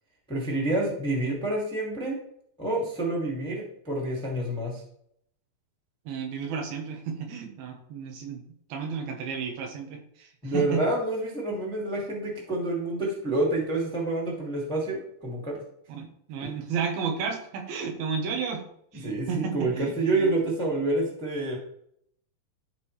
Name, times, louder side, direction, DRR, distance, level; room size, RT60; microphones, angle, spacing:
voice 1, 0.3-2.2 2.6-4.8 10.4-15.6 15.9-16.0 16.4-16.5 19.0-21.6, right 2 dB, 5° left, -2 dB, 0.9 m, -28 dB
voice 2, 6.1-8.4 8.7-10.8 16.0-18.6 18.9-20.3, right 6 dB, 85° right, 3 dB, 3.1 m, -32 dB
13.0 x 4.5 x 3.3 m, 0.70 s
omnidirectional pair, 4.2 m